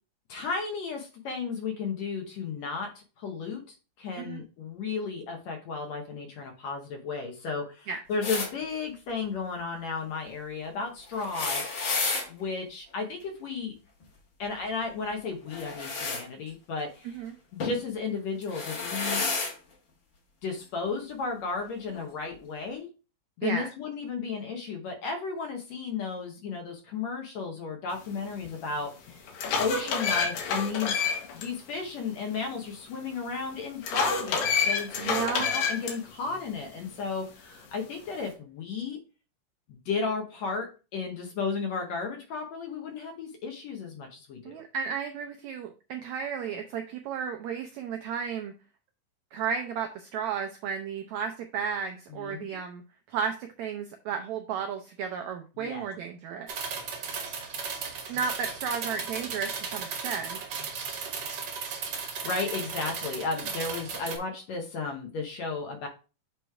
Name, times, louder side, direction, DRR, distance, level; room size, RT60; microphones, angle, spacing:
voice 1, 0.3-11.7 12.3-13.7 14.4-17.2 17.5-19.3 20.4-22.9 23.4-29.3 29.6-31.0 31.3-39.0 39.7-44.4 52.1-52.4 55.6-55.9 62.0-65.9, left 4 dB, 65° left, 3 dB, 1.8 m, -34 dB
sound 1, 8.2-8.5 11.1-12.3 15.5-16.2 17.6-17.8 18.4-19.5 20.6-20.7 21.9-22.0, left 3 dB, 50° left, 1.6 m, -31 dB
voice 2, 17.0-17.4 23.4-23.7 35.0-35.5 44.4-48.5 49.3-52.8 53.1-56.5 58.1-60.4, right 6 dB, 80° right, 4 dB, 1.6 m, -33 dB
sound 2, 28.4-28.5 29.1-31.4 31.8-31.9 33.8-35.9, left 5 dB, 85° left, 2.9 m, -28 dB
sound 3, 56.5-64.2, right 5 dB, 60° right, 1.6 m, -35 dB
8.0 x 3.1 x 4.6 m, 0.33 s
omnidirectional pair, 3.9 m